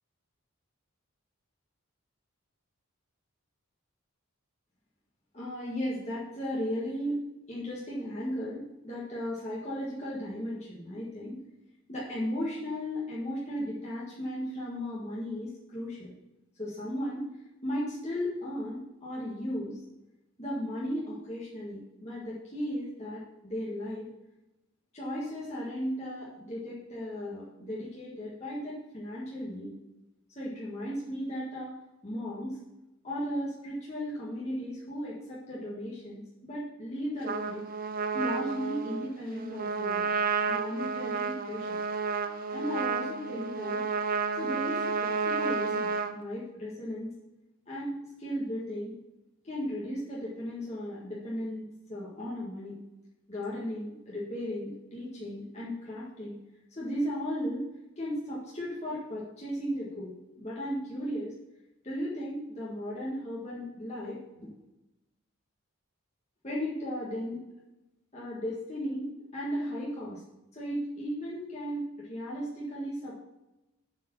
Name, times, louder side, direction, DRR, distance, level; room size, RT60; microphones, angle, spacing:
voice 1, 5.3-7.2 7.5-11.4 11.9-16.1 16.6-17.2 17.6-19.8 20.4-24.0 24.9-29.7 30.3-31.7 32.0-32.6 33.0-37.6 38.1-40.1 40.5-41.8 42.5-43.8 44.4-47.1 47.7-48.9 49.4-52.8 53.3-56.4 56.7-57.7 58.0-61.3 61.8-64.5 66.4-67.4 68.1-70.2 70.5-73.2, equal, 30° left, -7 dB, 1.8 m, -36 dB
Trumpet, 37.2-46.1, right 5 dB, 40° right, 0.6 m, -31 dB
8.0 x 4.6 x 6.9 m, 0.95 s
head